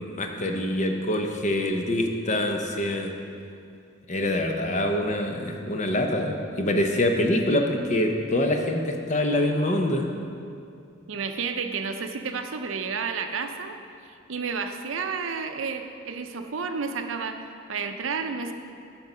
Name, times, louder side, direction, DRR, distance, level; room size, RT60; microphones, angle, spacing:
voice 1, 0.0-3.1 4.1-10.1, left 1 dB, 35° left, 4 dB, 0.7 m, -25 dB
voice 2, 11.1-18.5, right 5 dB, 75° right, 7 dB, 0.6 m, -31 dB
9.0 x 6.0 x 5.4 m, 2.5 s
head